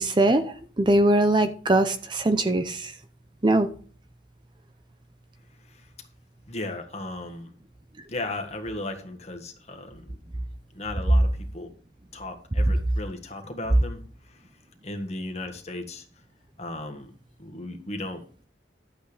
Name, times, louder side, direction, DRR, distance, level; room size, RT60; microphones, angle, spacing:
voice 1, 0.0-2.9 3.4-3.7, right 1 dB, 25° right, 9 dB, 0.6 m, -22 dB
voice 2, 6.5-7.5 8.1-10.1 10.7-11.7 12.1-14.4 14.8-16.1 16.6-17.1 17.4-18.2, left 2 dB, 35° left, 5 dB, 1.6 m, -36 dB
12.0 x 7.8 x 3.4 m, 0.43 s
head